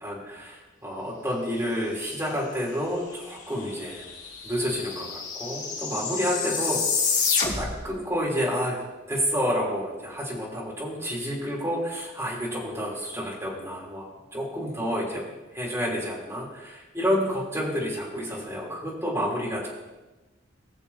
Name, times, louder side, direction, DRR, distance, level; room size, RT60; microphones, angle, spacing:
voice 1, 0.0-4.1 4.4-6.8 7.5-8.8 9.1-15.2 15.5-19.7, equal, 15° right, -6 dB, 3.6 m, -29 dB
sound 1, 3.4-3.5 3.7-7.9, left 5 dB, 40° left, 4.0 m, -28 dB
21.0 x 7.1 x 2.9 m, 1.1 s
head